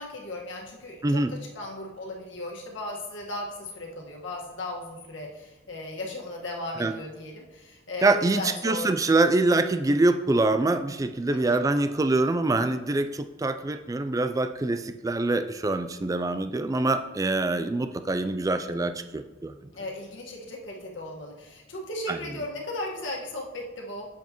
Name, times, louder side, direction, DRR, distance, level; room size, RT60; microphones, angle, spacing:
voice 1, 0.0-9.0 11.3-11.7 19.7-24.1, left 1 dB, 80° left, -1 dB, 1.5 m, -36 dB
voice 2, 8.0-19.7 22.1-22.2, right 2 dB, 20° right, 9 dB, 0.3 m, -25 dB
8.1 x 6.9 x 3.0 m, 1.1 s
head